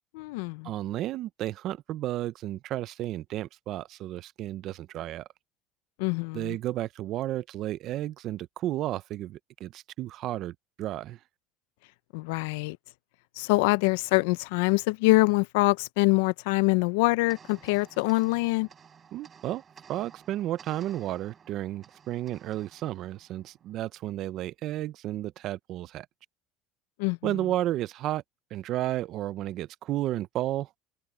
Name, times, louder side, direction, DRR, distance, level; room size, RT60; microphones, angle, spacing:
voice 1, 0.1-0.7 6.0-6.6 12.1-12.8 13.4-18.7 27.0-27.3, left 23 dB, 80° left, 0.5 m, -25 dB
voice 2, 0.6-5.3 6.3-11.2 19.1-19.6 19.9-26.1 27.2-28.2 28.5-30.7, right 14 dB, 45° right, 0.5 m, -32 dB
sound 1, 17.3-23.9, right 7 dB, 25° right, 5.2 m, -54 dB
cardioid pair, 150°, 0 cm